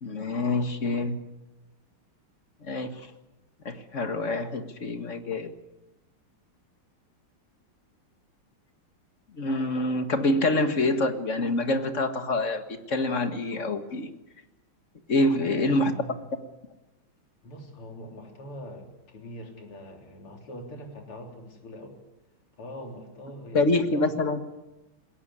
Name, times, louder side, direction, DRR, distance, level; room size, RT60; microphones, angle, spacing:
voice 1, 0.0-1.2 2.6-3.1 3.7-5.5 9.3-14.1 15.1-15.9 23.5-24.4, left 2 dB, 35° left, 8 dB, 1.8 m, -26 dB
voice 2, 15.4-16.2 17.4-22.0 22.6-24.2, equal, 85° left, 3 dB, 4.4 m, -43 dB
21.0 x 17.5 x 10.0 m, 1.0 s
omnidirectional pair, 2.4 m